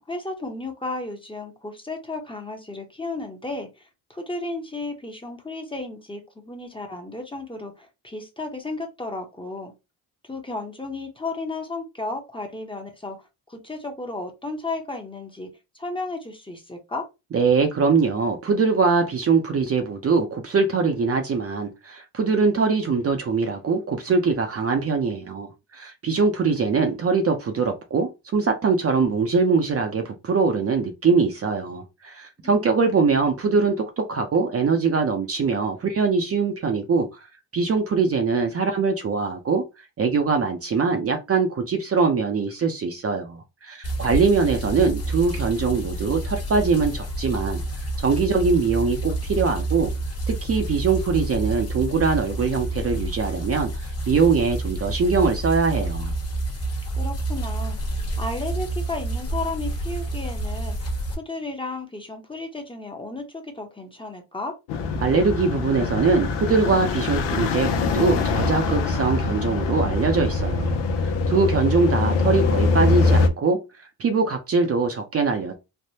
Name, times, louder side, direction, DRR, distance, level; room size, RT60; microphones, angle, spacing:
voice 1, 0.0-3.7 4.1-9.7 10.3-13.2 13.5-15.5 15.7-17.1 32.4-33.0 57.0-57.8 58.2-64.5, left 2 dB, 10° left, 0.7 m, -33 dB
voice 2, 17.3-25.5 25.7-37.1 37.5-39.6 40.0-47.6 48.0-49.9 50.3-56.1 65.0-73.6 74.0-75.5, right 4 dB, 35° right, 0.6 m, -22 dB
sound 1, 43.8-61.1, right 2 dB, 35° left, 1.1 m, -29 dB
sound 2, 64.7-73.3, left 3 dB, 90° left, 0.6 m, -23 dB
3.3 x 2.1 x 2.7 m
cardioid pair, 95°, 41 cm